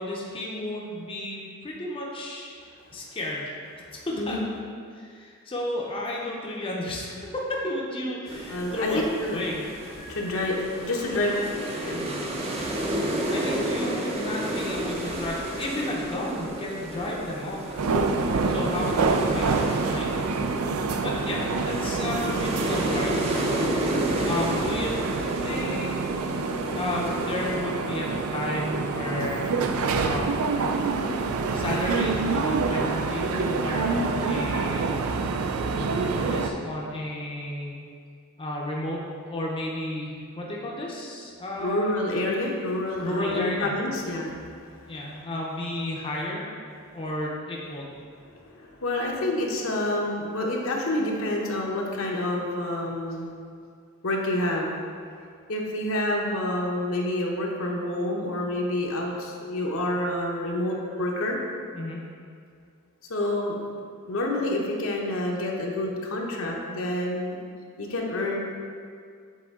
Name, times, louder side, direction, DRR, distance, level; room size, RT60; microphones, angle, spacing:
voice 1, 0.0-2.5 2.9-3.4 4.1-4.4 4.9-9.0 9.3-9.7 13.3-17.6 18.5-20.1 20.9-23.6 24.2-24.9 25.4-26.1 26.7-29.4 29.9-30.3 31.5-34.9 35.8-37.7 38.4-39.0 39.3-42.2 43.0-43.7 44.9-46.5 46.9-47.9 61.7-62.0, left 1 dB, 25° left, -3 dB, 0.6 m, -32 dB
sound 1, 8.3-27.6, right 1 dB, 30° right, 0.6 m, -32 dB
voice 2, 8.5-9.4 10.0-11.4 11.8-12.1 41.6-44.3 44.6-45.0 48.2-53.3 54.0-54.7 55.5-61.4 63.1-63.6 64.1-67.4 67.8-68.4, left 1 dB, 65° left, -1 dB, 0.8 m, -28 dB
sound 2, 17.8-36.5, right 4 dB, 80° right, 0.4 m, -27 dB
7.6 x 3.7 x 3.6 m, 2.2 s
head